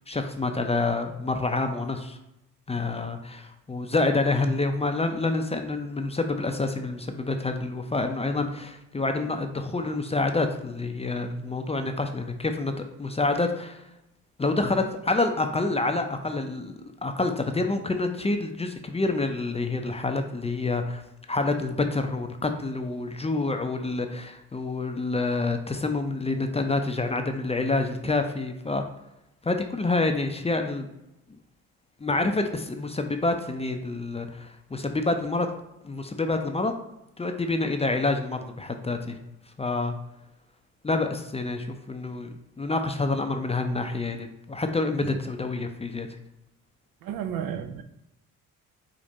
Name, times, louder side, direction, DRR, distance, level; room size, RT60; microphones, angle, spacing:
voice 1, 0.1-2.2 2.7-12.7 13.0-13.8 14.4-16.8 17.0-21.0 21.3-28.8 29.4-30.9 32.0-35.5 35.8-36.8 37.2-39.2 39.6-39.9 40.8-42.3 42.6-46.1, left 3 dB, 15° left, 5 dB, 0.6 m, -27 dB
voice 2, 47.0-47.8, right 9 dB, 60° right, 8 dB, 0.6 m, -32 dB
5.1 x 2.5 x 4.1 m, 0.87 s
hypercardioid pair, 55°, 41 cm